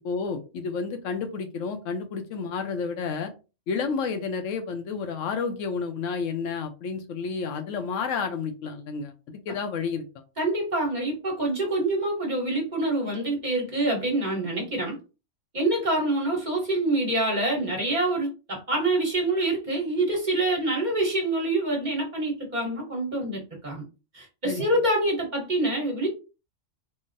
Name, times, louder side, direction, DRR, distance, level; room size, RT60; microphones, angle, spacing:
voice 1, 0.0-3.3 3.7-10.0 24.4-24.6, left 5 dB, 80° left, 7 dB, 0.9 m, -30 dB
voice 2, 10.4-15.0 15.5-23.8 24.1-26.1, right 2 dB, 40° right, -1 dB, 1.1 m, -26 dB
3.8 x 2.1 x 2.5 m, 0.31 s
omnidirectional pair, 1.3 m